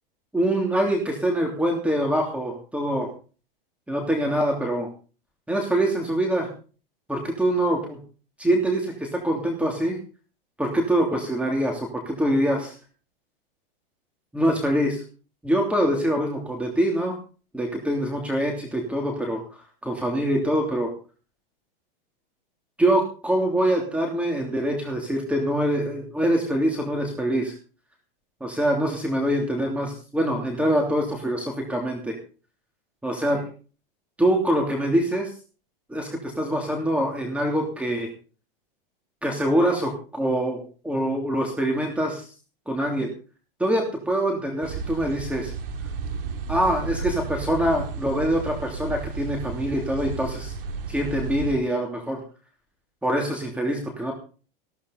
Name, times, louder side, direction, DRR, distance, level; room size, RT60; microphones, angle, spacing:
voice 1, 0.3-3.1 3.9-4.9 5.5-6.5 7.1-8.0 8.4-10.0 10.6-12.7 14.3-15.0 15.4-17.2 17.5-19.4 19.8-20.9 22.8-27.5 28.4-32.2 33.0-33.4 34.2-35.3 35.9-38.1 39.2-42.3 42.7-43.1 43.6-45.5 46.5-50.5 50.9-52.2 53.0-54.1, right 1 dB, 5° right, 1 dB, 3.0 m, -24 dB
sound 1, 44.6-51.5, right 4 dB, 70° right, 3.4 m, -33 dB
16.5 x 13.5 x 4.1 m, 0.38 s
hypercardioid pair, 120°, 29 cm